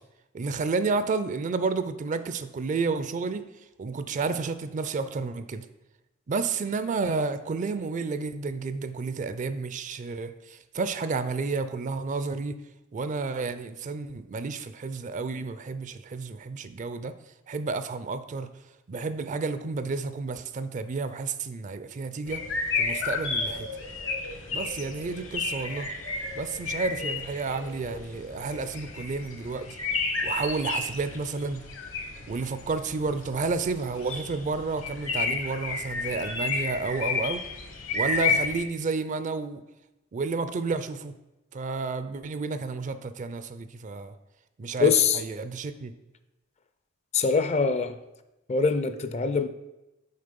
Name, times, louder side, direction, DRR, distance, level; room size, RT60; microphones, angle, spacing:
voice 1, 0.3-3.5 3.8-5.7 6.3-12.6 12.9-17.1 17.5-18.5 18.9-22.4 22.8-23.7 24.5-25.9 26.3-29.7 30.2-31.6 32.3-37.4 37.9-39.6 40.1-41.1 41.5-44.1 44.6-45.9, right 4 dB, 40° right, 12 dB, 0.4 m, -31 dB
sound 1, 22.3-38.6, left 4 dB, 70° left, 1.1 m, -32 dB
voice 2, 44.8-45.2 47.1-48.0 48.5-49.5, left 5 dB, 35° left, 11 dB, 0.4 m, -23 dB
6.6 x 4.4 x 5.2 m, 0.95 s
head